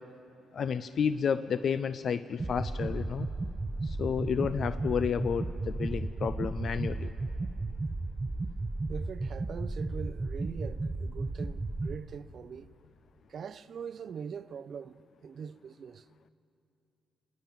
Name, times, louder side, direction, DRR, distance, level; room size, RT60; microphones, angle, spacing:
voice 1, 0.5-3.3 3.8-7.1, left 7 dB, 55° left, 0.5 m, -31 dB
sound 1, 2.4-11.9, right 2 dB, 20° right, 0.8 m, -34 dB
voice 2, 8.9-12.7 13.3-16.1, right 7 dB, 55° right, 0.6 m, -42 dB
28.5 x 10.0 x 9.1 m
cardioid pair, 90°, 0 cm